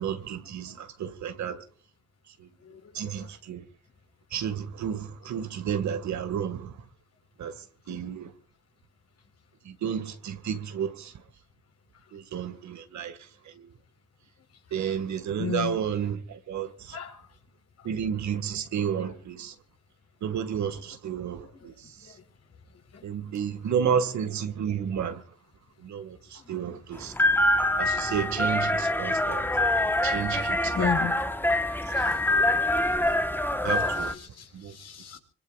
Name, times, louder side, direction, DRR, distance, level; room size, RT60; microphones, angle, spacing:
voice 1, 0.0-1.6 2.9-3.6 4.3-6.7 7.4-7.5 7.9-8.3 9.7-11.1 12.1-13.2 13.6-13.7 14.7-17.0 17.8-19.5 20.2-21.7 23.0-25.2 25.8-26.2 26.5-27.1 27.8-29.5 30.0-30.7 32.0-32.1 32.9-33.1 33.6-34.1 34.5-34.7, right 8 dB, 70° right, 2.1 m, -31 dB
voice 2, 15.4-15.8 16.9-17.1 21.5-21.6 22.9-23.0 30.7-31.2 32.0-32.1 33.3-35.2, left 7 dB, 55° left, 4.5 m, -34 dB
sound 1, 26.9-34.1, left 1 dB, 5° left, 1.3 m, -25 dB
25.0 x 23.5 x 2.5 m
cardioid pair, 90°, 30 cm